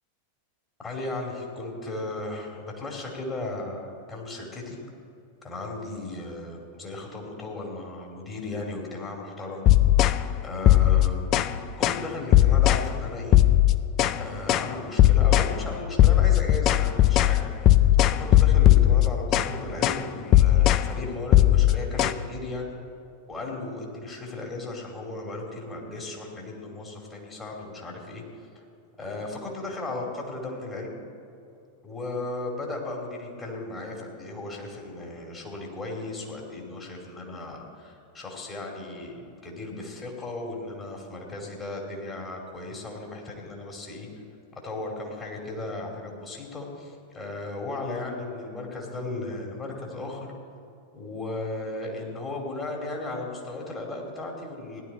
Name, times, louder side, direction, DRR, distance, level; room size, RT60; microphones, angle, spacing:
voice 1, 0.8-4.8 5.4-9.7 10.4-11.3 11.8-13.4 14.2-17.5 18.1-22.8 23.3-28.2 28.5-28.6 29.0-30.9 31.8-44.1 44.6-50.3 50.9-54.8, left 2 dB, 20° left, 0 dB, 2.9 m, -36 dB
sound 1, 9.7-10.2 10.7-11.5 11.8-12.0 12.3-12.9 13.3-14.2 14.5-14.7 15.0-15.5 16.0-19.5 19.8-20.0 20.3-20.9 21.3-22.1, left 13 dB, 35° left, 0.5 m, -18 dB
17.0 x 11.5 x 4.4 m, 2.7 s
figure-of-eight pair, 90°, 0 cm